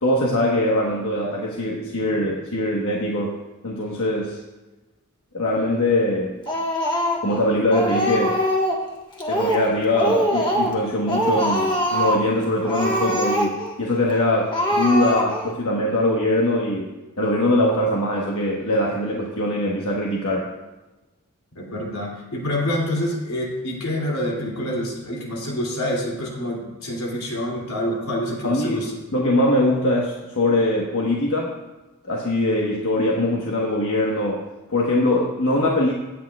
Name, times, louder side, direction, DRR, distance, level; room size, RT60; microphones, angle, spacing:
voice 1, 0.0-4.4 5.3-6.4 7.2-8.4 9.3-16.9 17.2-20.5 28.4-28.8 29.1-31.5 32.1-34.4 34.7-35.9, left 1 dB, 65° left, -3 dB, 1.3 m, -22 dB
Speech, 6.5-7.4 7.7-8.8 9.2-9.7 9.9-10.8 11.1-12.3 12.6-13.7 14.1-14.2 14.5-15.5, equal, 20° left, 1.4 m, -23 dB
voice 2, 21.5-28.9, left 1 dB, 85° left, -2 dB, 2.8 m, -27 dB
17.5 x 8.8 x 2.4 m, 1.1 s
head